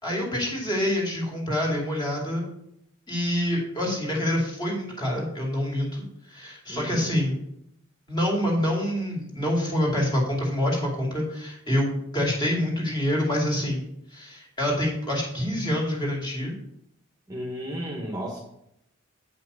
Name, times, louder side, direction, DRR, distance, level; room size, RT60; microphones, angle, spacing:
voice 1, 0.0-2.4 3.1-7.4 8.1-13.9 14.1-16.6, left 1 dB, 20° left, -2 dB, 2.5 m, -26 dB
voice 2, 6.7-7.2 17.3-18.4, equal, 15° right, -1 dB, 1.2 m, -33 dB
8.6 x 5.6 x 5.5 m, 0.76 s
head